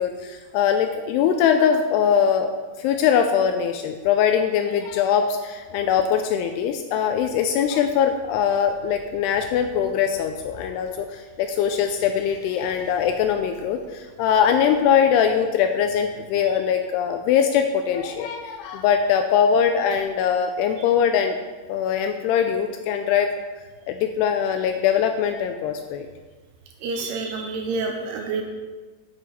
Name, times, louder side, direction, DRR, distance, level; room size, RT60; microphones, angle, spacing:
voice 1, 0.0-2.5 2.8-21.3 21.7-23.3 23.9-26.1, left 8 dB, 85° left, 6 dB, 2.4 m, -22 dB
voice 2, 26.8-28.4, right 3 dB, 75° right, 3 dB, 2.8 m, -28 dB
8.2 x 7.7 x 4.2 m, 1.3 s
omnidirectional pair, 5.0 m